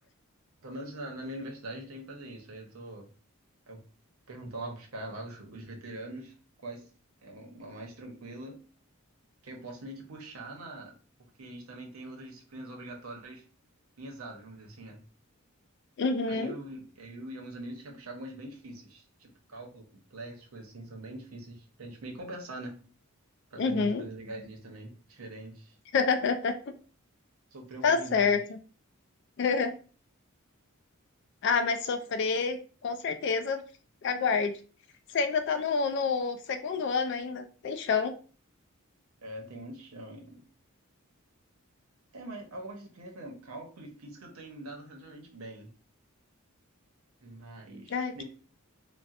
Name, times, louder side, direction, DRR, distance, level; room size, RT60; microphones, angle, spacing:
voice 1, 0.6-3.1 3.7-3.8 4.3-6.3 6.6-6.9 7.2-8.6 9.4-10.9 11.4-13.4 14.0-15.0 16.3-22.8 23.5-25.8 27.5-28.4 39.2-40.4 42.1-45.7 47.2-48.2, right 1 dB, 80° right, 2 dB, 0.8 m, -43 dB
voice 2, 16.0-16.5 23.6-24.0 25.9-26.7 27.8-28.6 29.4-29.7 31.4-33.6 34.0-34.5 35.1-38.1 47.9-48.2, left 5 dB, 55° left, 8 dB, 0.3 m, -28 dB
4.0 x 2.1 x 2.4 m, 0.37 s
head